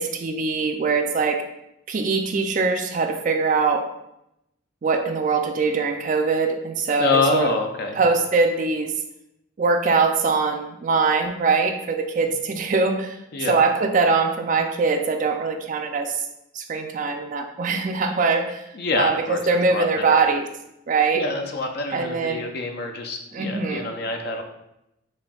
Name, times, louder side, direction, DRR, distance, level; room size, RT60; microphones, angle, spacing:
voice 1, 0.0-1.4 1.9-3.9 4.8-7.5 8.0-8.9 9.6-13.2 13.5-16.2 16.5-18.7 19.0-20.5 20.9-21.2 21.9-22.5 23.3-23.9, right 4 dB, 40° right, 5 dB, 0.3 m, -22 dB
voice 2, 7.0-8.0 13.3-13.6 18.7-19.4 19.7-20.2 21.1-24.4, left 3 dB, 50° left, 4 dB, 0.4 m, -26 dB
4.2 x 3.4 x 2.3 m, 0.84 s
head